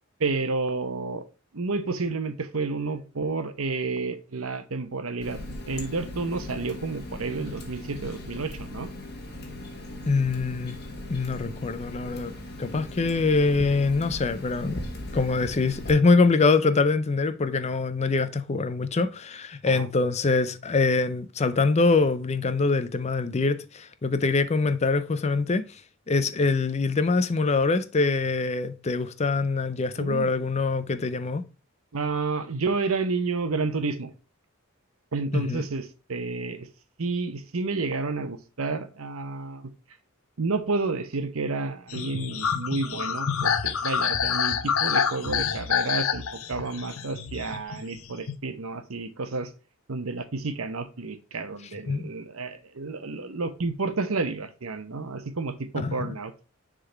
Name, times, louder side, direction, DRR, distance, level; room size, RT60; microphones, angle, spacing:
voice 1, 0.2-1.2 1.5-8.9 19.7-19.9 30.0-30.4 31.9-34.1 35.1-36.7 37.0-39.7 40.4-49.5 49.9-56.3, right 3 dB, 85° right, 0.9 m, -30 dB
Water tap faucet, 5.2-15.9, left 1 dB, 50° left, 1.6 m, -38 dB
voice 2, 10.1-10.8 11.1-12.3 12.6-14.9 15.1-25.8 26.1-31.4 35.3-35.6 51.9-52.1 55.8-56.1, left 3 dB, 30° left, 0.5 m, -24 dB
sound 1, 41.9-48.3, left 7 dB, 80° left, 0.7 m, -27 dB
6.6 x 3.8 x 4.5 m
head